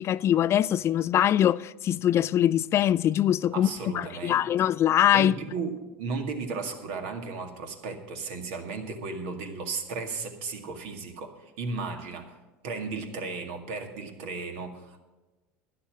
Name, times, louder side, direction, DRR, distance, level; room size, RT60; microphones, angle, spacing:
voice 1, 0.0-3.7 3.9-5.4, left 11 dB, 40° left, 0.3 m, -23 dB
voice 2, 3.5-4.4 5.1-12.4 12.6-15.0, right 4 dB, 70° right, 2.0 m, -35 dB
12.5 x 9.9 x 6.1 m
hypercardioid pair, 85°, 7 cm